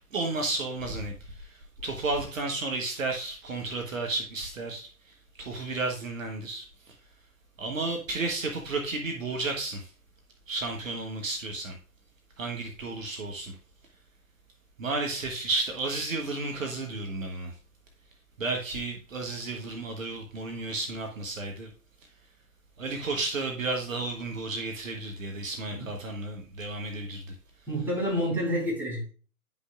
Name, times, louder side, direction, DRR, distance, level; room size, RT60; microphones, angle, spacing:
voice 1, 0.1-4.9 5.4-6.9 7.6-9.9 10.5-11.8 12.4-13.5 14.8-17.5 18.4-21.7 22.8-27.3, right 3 dB, 60° right, 1.1 m, -32 dB
voice 2, 27.7-29.1, equal, 5° right, 4.0 m, -29 dB
9.7 x 5.3 x 2.4 m
figure-of-eight pair, 120°, 45 cm